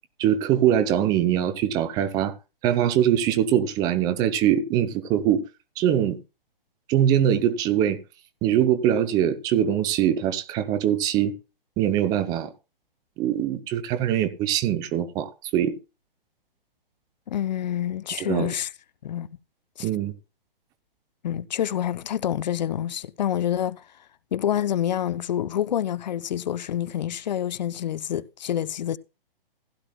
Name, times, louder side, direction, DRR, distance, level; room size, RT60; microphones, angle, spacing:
voice 1, 0.2-2.3 2.6-5.4 5.8-6.2 6.9-8.0 8.4-11.3 11.8-12.5 13.2-15.8 18.2-18.5 19.8-20.1, right 10 dB, 15° right, 0.5 m, -22 dB
voice 2, 17.3-18.7 19.0-19.3 19.8-19.9 21.2-23.9 24.3-29.0, left 10 dB, 50° left, 0.6 m, -27 dB
15.5 x 12.0 x 2.2 m
hypercardioid pair, 140°, 29 cm